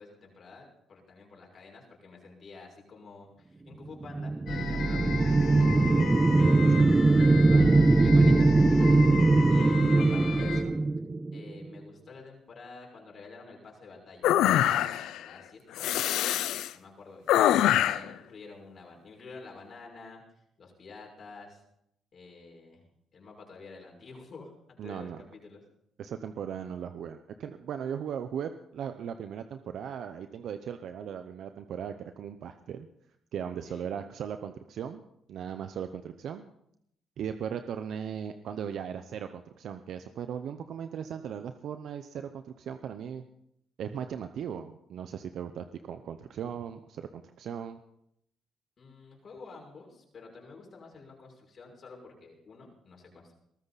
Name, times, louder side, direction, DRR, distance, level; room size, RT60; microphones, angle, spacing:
voice 1, 0.0-5.5 6.6-9.0 9.5-10.8 11.3-14.3 14.6-17.3 17.7-21.6 22.1-22.8 23.1-25.6 33.6-33.9 48.8-53.3, left 4 dB, 50° left, 0 dB, 6.2 m, -49 dB
sound 1, 4.0-11.7, right 3 dB, 20° right, 0.5 m, -22 dB
sound 2, 4.5-10.6, left 3 dB, 65° left, 3.9 m, -33 dB
sound 3, 14.2-15.2 15.8-16.7 17.3-18.1, left 12 dB, 85° left, 0.6 m, -24 dB
voice 2, 24.8-25.2 26.0-32.9 33.3-36.4 37.2-43.2 43.8-47.8, right 8 dB, 70° right, 8 dB, 0.8 m, -38 dB
21.5 x 14.0 x 4.1 m, 0.75 s
cardioid pair, 90°, 0 cm